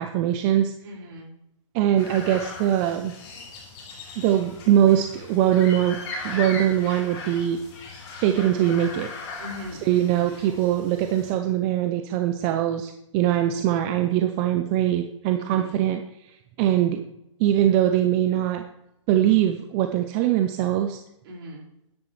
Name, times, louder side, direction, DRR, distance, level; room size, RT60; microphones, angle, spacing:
voice 1, 0.0-0.7 1.7-3.1 4.2-6.0 6.2-7.6 8.2-9.1 9.8-16.0 16.6-17.0 17.4-18.7 19.1-21.0, right 11 dB, 20° right, 7 dB, 0.4 m, -22 dB
voice 2, 0.8-1.3 9.4-10.4 15.4-15.9 21.2-21.7, equal, 50° right, -3 dB, 4.9 m, -40 dB
sound 1, 2.0-11.3, left 3 dB, 25° left, 3.5 m, -38 dB
13.0 x 10.5 x 3.2 m, 0.81 s
hypercardioid pair, 155°, 17 cm